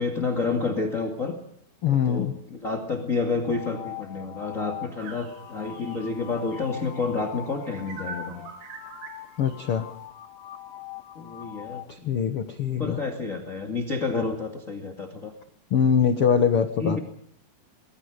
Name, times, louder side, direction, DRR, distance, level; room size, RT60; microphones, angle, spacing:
voice 1, 0.0-1.4 1.8-8.4 11.1-12.2 12.6-15.3 16.8-17.0, left 4 dB, 25° left, 3 dB, 1.8 m, -29 dB
voice 2, 1.8-2.3 9.4-9.9 11.9-13.0 15.7-17.0, left 7 dB, 85° left, 8 dB, 1.2 m, -23 dB
sound 1, 3.5-11.9, left 14 dB, 65° left, 2.9 m, -42 dB
sound 2, 5.0-7.2 7.7-9.8, right 6 dB, 70° right, 3.9 m, -43 dB
28.5 x 21.5 x 5.1 m, 0.67 s
omnidirectional pair, 4.7 m